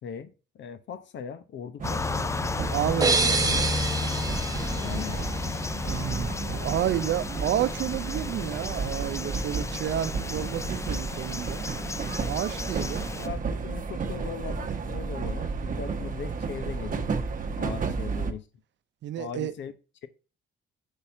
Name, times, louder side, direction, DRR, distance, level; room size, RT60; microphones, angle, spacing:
voice 1, 0.0-2.3 4.8-5.2 13.1-17.1 17.6-18.4 19.2-19.7 20.0-20.1, left 7 dB, 65° left, 0.9 m, -39 dB
sound 1, 1.8-13.3, left 4 dB, 15° left, 0.3 m, -33 dB
sound 2, 1.8-18.3, right 4 dB, 45° right, 0.9 m, -33 dB
voice 2, 2.7-3.7 5.8-11.7 12.3-13.1 17.7-17.9 19.0-19.5, right 11 dB, 65° right, 0.6 m, -31 dB
sound 3, 3.0-5.8, right 3 dB, 20° right, 1.1 m, -27 dB
5.4 x 4.2 x 4.4 m
cardioid pair, 90°, 20 cm